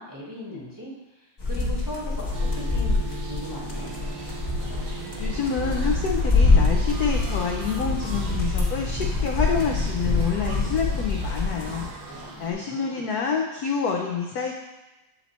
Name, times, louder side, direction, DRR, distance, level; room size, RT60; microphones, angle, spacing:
voice 1, 0.0-3.9 12.0-13.0, left 1 dB, 15° right, -6 dB, 0.9 m, -39 dB
sound 1, 1.4-11.9, left 3 dB, 25° left, 1.1 m, -25 dB
bells audio, 2.3-12.5, right 2 dB, 60° right, 1.2 m, -38 dB
sound 2, 3.8-12.3, right 2 dB, 80° right, 1.7 m, -42 dB
voice 2, 5.2-14.5, left 5 dB, 75° left, 0 dB, 0.9 m, -28 dB
7.5 x 3.1 x 4.1 m, 1.1 s
omnidirectional pair, 2.2 m